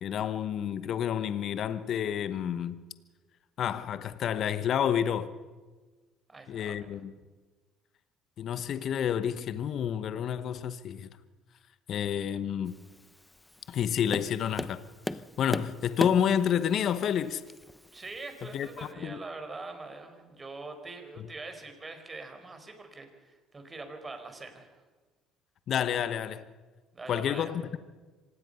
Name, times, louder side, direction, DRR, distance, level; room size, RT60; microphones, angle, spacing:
voice 1, 0.0-2.8 3.6-5.3 6.5-7.1 8.4-11.1 11.9-12.7 13.7-14.8 15.4-17.4 18.5-18.7 19.0-19.2 25.7-26.4 27.1-27.8, left 9 dB, 55° left, 1.0 m, -29 dB
voice 2, 6.3-6.9 17.9-24.7 26.9-27.6, right 3 dB, 25° right, 4.8 m, -43 dB
Tap, 12.7-18.9, left 1 dB, 10° left, 0.9 m, -39 dB
25.5 x 19.0 x 5.6 m
hypercardioid pair, 65°, 0 cm